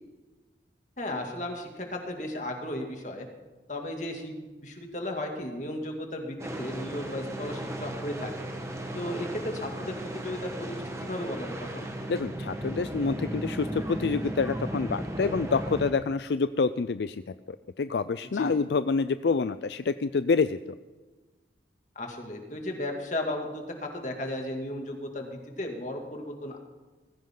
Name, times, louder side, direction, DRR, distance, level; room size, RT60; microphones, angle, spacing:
voice 1, 1.0-3.3 3.7-4.4 4.6-8.5 8.9-11.5 11.7-11.9 18.3-18.6 22.0-25.3 25.6-26.6, left 1 dB, 45° left, 2 dB, 2.5 m, -35 dB
sound 1, 6.4-15.9, right 1 dB, 15° right, 1.4 m, -35 dB
voice 2, 12.1-17.2 17.8-20.6, left 4 dB, 75° left, 12 dB, 0.4 m, -27 dB
19.5 x 16.0 x 3.9 m, 1.3 s
head